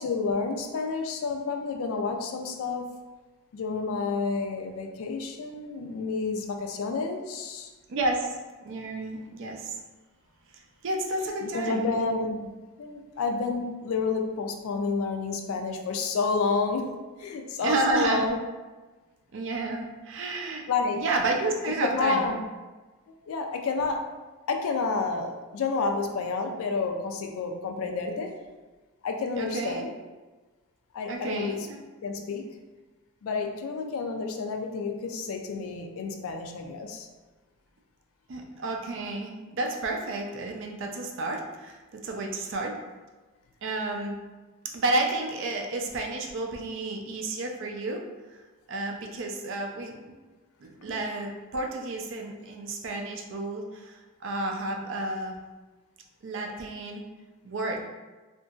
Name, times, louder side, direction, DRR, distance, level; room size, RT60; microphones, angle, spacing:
voice 1, 0.0-2.9 3.5-7.7 11.4-12.5 12.8-16.9 17.2-18.4 20.7-21.0 21.6-22.4 23.3-24.1 24.5-28.3 29.0-29.9 30.9-31.7 32.0-32.5 33.2-37.1, left 4 dB, 70° left, 4 dB, 0.3 m, -30 dB
voice 2, 7.9-9.8 10.8-12.1 17.6-18.2 19.3-20.7 20.9-22.3 29.4-29.8 31.1-31.8 38.3-42.8 43.6-44.2 44.6-48.0 48.3-48.4 48.7-50.2 50.6-55.4 56.2-57.0 57.4-57.8, right 2 dB, 55° right, 2 dB, 0.4 m, -31 dB
2.8 x 2.5 x 2.3 m, 1.3 s
head